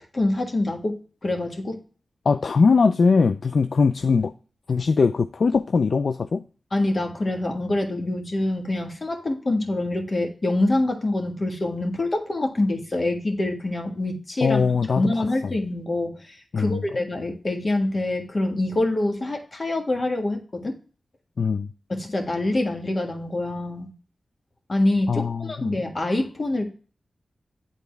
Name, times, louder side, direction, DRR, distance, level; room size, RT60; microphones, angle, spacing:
voice 1, 0.0-1.8 6.7-14.7 15.0-20.7 21.9-23.9 24.7-26.6, left 2 dB, 50° left, 3 dB, 1.6 m, -25 dB
voice 2, 2.3-4.3 4.7-6.4 14.4-15.3 16.5-16.8 21.4-21.7 25.1-25.7, left 4 dB, 70° left, 10 dB, 0.3 m, -21 dB
8.5 x 4.1 x 3.4 m, 0.39 s
cardioid pair, 45°, 0 cm